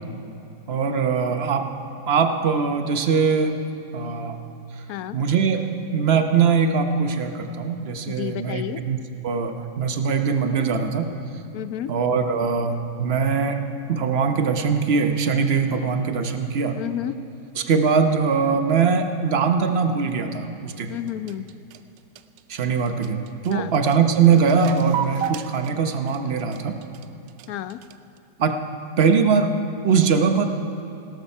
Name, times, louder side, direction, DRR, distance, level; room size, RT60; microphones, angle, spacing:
voice 1, 0.7-1.7 2.1-3.6 3.9-4.4 5.1-5.6 5.9-9.0 9.2-11.1 11.9-13.6 13.9-16.7 17.6-20.9 22.5-26.8 28.4-28.6 29.0-29.5 29.8-30.5, right 5 dB, 45° right, 7 dB, 0.9 m, -21 dB
voice 2, 8.1-8.8 11.5-11.9 16.8-17.2 20.9-21.5 23.5-23.7 27.5-27.8, left 11 dB, 70° left, 13 dB, 0.9 m, -31 dB
sound 1, 20.9-28.2, right 10 dB, 90° right, 1.3 m, -34 dB
17.5 x 13.0 x 5.5 m, 2.8 s
omnidirectional pair, 1.9 m